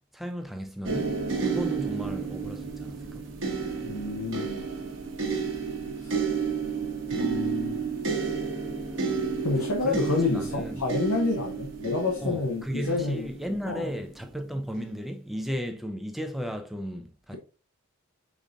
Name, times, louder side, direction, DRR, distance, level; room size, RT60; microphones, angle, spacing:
voice 1, 0.1-1.1 1.4-3.3 9.8-10.8 12.2-17.4, equal, ahead, 0.5 m, -34 dB
sound 1, 0.8-13.9 14.7-14.9, right 5 dB, 55° right, 1.0 m, -31 dB
voice 2, 3.8-4.7 6.0-6.2 7.1-7.8 9.4-13.3 13.7-13.9, left 3 dB, 75° left, 0.8 m, -29 dB
5.2 x 3.8 x 2.5 m
head